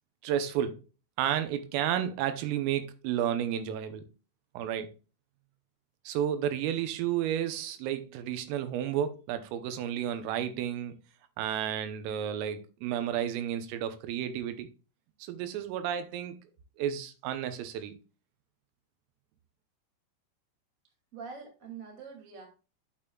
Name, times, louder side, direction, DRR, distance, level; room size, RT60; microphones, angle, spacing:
voice 1, 0.2-0.8 1.2-4.0 4.6-4.9 6.1-11.0 11.4-14.7 15.2-16.4 16.8-18.0, right 10 dB, 85° right, 3.4 m, -32 dB
voice 2, 21.1-22.5, right 5 dB, 35° right, 1.2 m, -44 dB
11.0 x 6.8 x 2.3 m
omnidirectional pair, 5.8 m